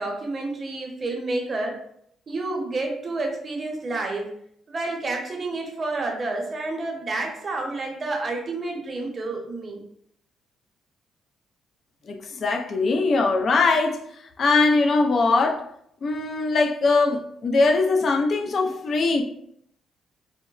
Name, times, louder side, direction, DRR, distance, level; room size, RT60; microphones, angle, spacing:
voice 1, 0.0-1.8 2.3-4.2 4.7-9.8, right 2 dB, 35° right, 0.7 m, -29 dB
voice 2, 12.1-14.0 14.4-15.6 16.0-19.2, left 3 dB, 50° left, 0.3 m, -21 dB
3.8 x 2.1 x 2.3 m
cardioid pair, 90°, 0 cm